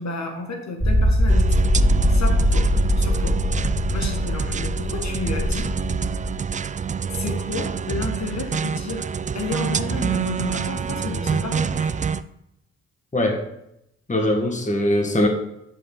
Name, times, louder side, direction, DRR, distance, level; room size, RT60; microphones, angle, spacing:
voice 1, 0.0-1.6 2.1-2.7 3.0-3.4 3.9-5.7 7.1-9.1 9.3-11.9, left 3 dB, 55° left, 2 dB, 1.6 m, -31 dB
sound 1, 0.8-6.4, equal, 5° right, 1.1 m, -21 dB
sound 2, 1.3-12.2, right 6 dB, 25° right, 0.3 m, -27 dB
voice 2, 14.1-15.3, left 1 dB, 25° left, 2 dB, 1.5 m, -21 dB
10.5 x 4.1 x 3.8 m, 0.80 s
supercardioid pair, 45°, 32 cm